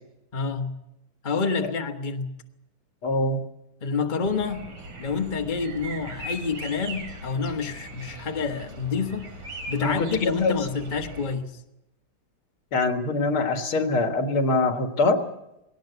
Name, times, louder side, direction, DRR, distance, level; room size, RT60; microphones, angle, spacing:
voice 1, 0.3-0.7 1.2-2.3 3.8-4.7 5.0-9.3 9.7-11.5, left 5 dB, 25° left, 4 dB, 1.3 m, -28 dB
voice 2, 3.0-3.4 9.8-10.6 12.7-15.3, left 2 dB, 80° left, 6 dB, 2.7 m, -24 dB
sound 1, 4.2-11.4, right 2 dB, 60° right, 3.5 m, -39 dB
20.0 x 18.0 x 8.2 m, 0.88 s
omnidirectional pair, 2.3 m